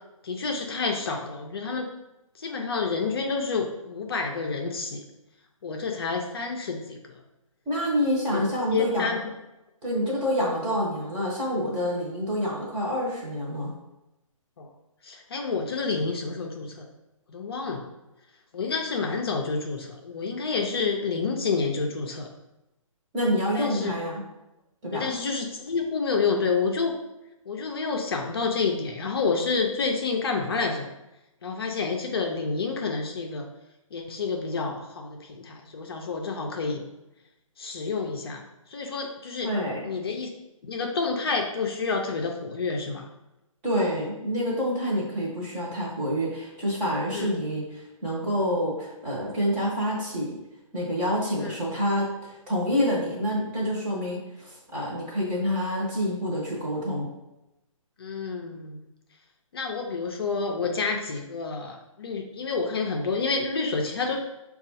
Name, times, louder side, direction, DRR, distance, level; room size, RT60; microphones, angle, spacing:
voice 1, 0.2-1.9 2.4-5.0 5.6-7.2 8.3-9.3 14.6-14.7 15.0-16.9 17.3-17.8 18.5-22.3 23.5-23.9 24.9-26.9 27.5-30.9 31.4-33.5 33.9-36.9 37.6-38.4 38.7-39.5 39.8-40.3 40.6-43.1 47.1-47.3 51.4-51.5 58.0-58.9 59.5-64.2, left 4 dB, 45° left, 2 dB, 0.6 m, -29 dB
voice 2, 7.7-9.2 9.8-13.7 23.1-24.2 24.8-25.1 39.4-39.9 43.6-50.4 50.7-57.1, equal, 15° right, -5 dB, 0.9 m, -27 dB
5.1 x 2.4 x 4.0 m, 0.94 s
hypercardioid pair, 160°, 18 cm